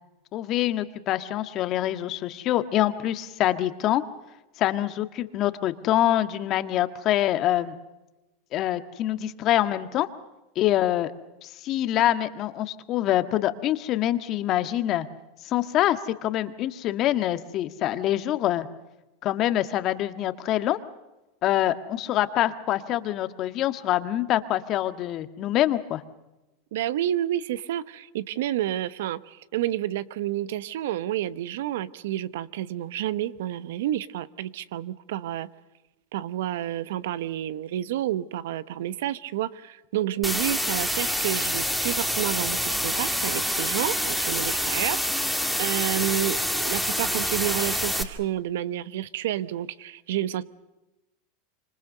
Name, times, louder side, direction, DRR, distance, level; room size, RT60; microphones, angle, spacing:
voice 1, 0.3-4.0 4.6-7.7 8.5-10.1 10.5-11.1 11.4-15.1 15.4-18.7 19.2-20.8 21.4-26.0, left 13 dB, 45° left, 10 dB, 1.6 m, -25 dB
voice 2, 26.7-35.5 36.1-45.3 45.6-50.4, right 12 dB, 75° right, 15 dB, 1.0 m, -30 dB
sound 1, 40.2-48.0, equal, ahead, 2.5 m, -27 dB
26.0 x 26.0 x 6.7 m, 1.0 s
hypercardioid pair, 105°, 0 cm